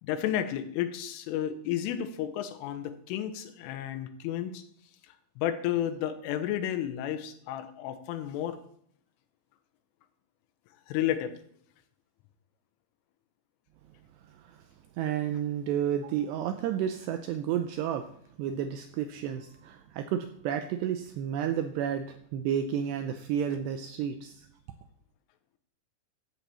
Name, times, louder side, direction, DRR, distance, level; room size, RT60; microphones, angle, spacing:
voice 1, 0.0-4.6 5.4-8.6 10.9-11.4, left 11 dB, 85° left, 10 dB, 3.5 m, -32 dB
voice 2, 15.0-18.1 18.4-24.5, right 9 dB, 90° right, 8 dB, 2.4 m, -31 dB
13.5 x 6.0 x 8.3 m, 0.65 s
omnidirectional pair, 5.6 m